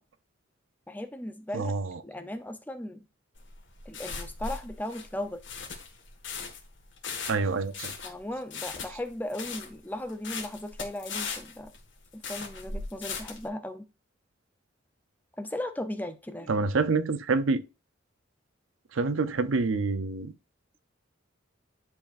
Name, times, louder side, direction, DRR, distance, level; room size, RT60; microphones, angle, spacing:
voice 1, 0.9-1.7 2.0-3.0 3.9-5.4 8.0-11.7 12.1-13.9 15.4-16.5, left 1 dB, 10° left, 0.7 m, -37 dB
voice 2, 1.5-2.0 7.3-7.9 16.5-17.6 18.9-20.3, right 4 dB, 80° right, 0.6 m, -27 dB
sound 1, 3.4-13.5, left 5 dB, 70° left, 1.7 m, -38 dB
10.5 x 4.9 x 2.6 m
head